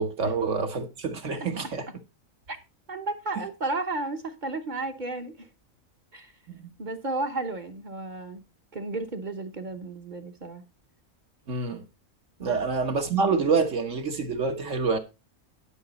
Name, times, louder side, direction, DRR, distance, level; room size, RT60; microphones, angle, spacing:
voice 1, 0.0-1.8 6.5-6.7 11.5-11.8 12.4-15.0, right 4 dB, 65° right, 1.6 m, -27 dB
voice 2, 2.9-5.5 6.1-6.3 6.8-8.4 8.7-10.6 12.4-12.6, right 2 dB, 40° right, 1.0 m, -33 dB
11.0 x 5.9 x 4.1 m
omnidirectional pair, 1.4 m